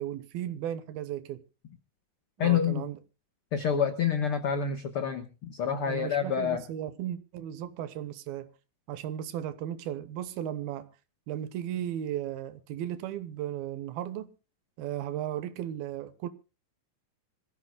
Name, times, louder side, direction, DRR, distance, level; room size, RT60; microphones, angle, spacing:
voice 1, 0.0-1.4 2.4-3.0 5.9-8.5 8.9-10.9 11.3-14.3 14.8-16.3, right 11 dB, 85° right, 2.9 m, -35 dB
voice 2, 2.4-2.9 3.5-6.6, left 8 dB, 90° left, 1.2 m, -28 dB
26.0 x 14.5 x 2.2 m
omnidirectional pair, 4.3 m